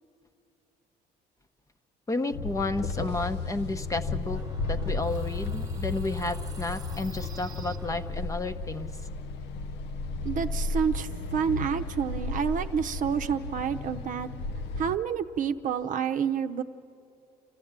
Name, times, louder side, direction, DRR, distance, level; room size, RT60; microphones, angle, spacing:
voice 1, 2.1-4.4 4.7-8.9, left 2 dB, 20° left, 9 dB, 0.8 m, -32 dB
sound 1, 2.3-15.0, left 3 dB, 85° left, 0.8 m, -34 dB
sound 2, 4.2-8.5, right 3 dB, 20° right, 1.3 m, -48 dB
voice 2, 10.2-14.3 14.8-16.6, right 7 dB, 50° right, 8 dB, 0.8 m, -29 dB
29.5 x 13.5 x 8.8 m, 2.7 s
cardioid pair, 110°, 17 cm